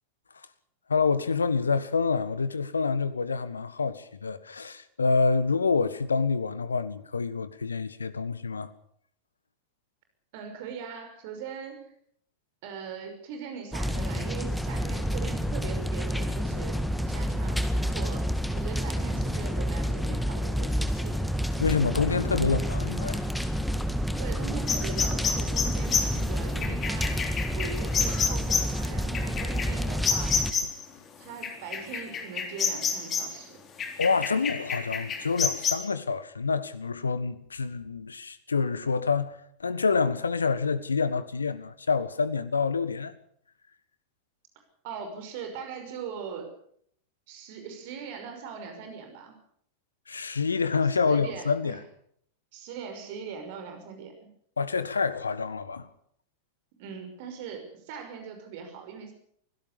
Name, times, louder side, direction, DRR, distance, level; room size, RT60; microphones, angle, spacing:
voice 1, 0.9-8.7 21.6-23.2 34.0-43.1 50.1-51.8 54.6-55.9, left 4 dB, 75° left, 1.4 m, -27 dB
voice 2, 10.3-11.8 12.6-16.8 17.1-21.2 24.2-27.2 27.5-30.4 31.2-33.6 44.8-46.5 47.3-49.4 51.1-51.8 52.5-54.3 56.8-59.1, right 6 dB, 50° right, 5.9 m, -40 dB
sound 1, 13.7-30.5, equal, ahead, 1.8 m, -29 dB
sound 2, 24.7-30.8 31.4-33.4 33.8-35.7, left 6 dB, 25° left, 3.5 m, -29 dB
24.0 x 17.0 x 7.0 m
figure-of-eight pair, 90°, 0 cm